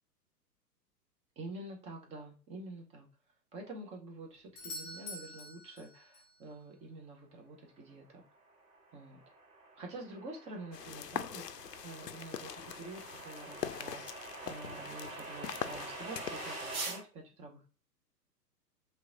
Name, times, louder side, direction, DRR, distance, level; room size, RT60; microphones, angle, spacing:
voice 1, 1.4-3.1 3.5-8.0 8.9-9.2 9.8-17.7, right 2 dB, 15° right, 1 dB, 0.7 m, -47 dB
Doorbell, 4.6-6.4 10.5-10.6, left 2 dB, 25° left, 0.6 m, -46 dB
sound 1, 8.3-17.0, right 3 dB, 60° right, 1.2 m, -45 dB
sound 2, 10.7-16.9, left 9 dB, 75° left, 0.5 m, -43 dB
3.3 x 2.9 x 3.7 m, 0.38 s
figure-of-eight pair, 110°, 49 cm